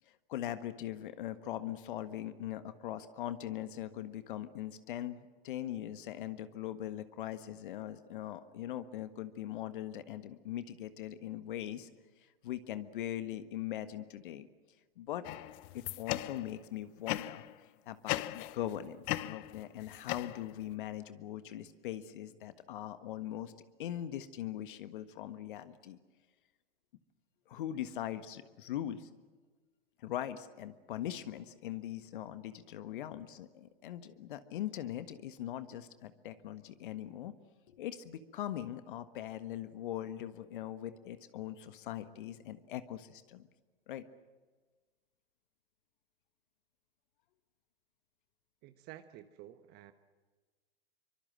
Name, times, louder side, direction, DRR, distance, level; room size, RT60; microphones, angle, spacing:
voice 1, 0.3-11.9 12.4-14.5 15.0-15.3 15.7-17.4 17.9-23.5 23.8-26.0 27.5-29.1 30.0-37.3 37.7-43.5 43.9-44.0, left 12 dB, 55° left, 11 dB, 1.5 m, -41 dB
sound 1, 15.2-16.6 17.1-17.5 18.1-18.7 19.0-20.7, left 17 dB, 35° left, 0.9 m, -38 dB
voice 2, 48.6-49.9, right 13 dB, 35° right, 10 dB, 1.2 m, -51 dB
24.5 x 24.5 x 7.7 m, 1.4 s
hypercardioid pair, 110°, 30 cm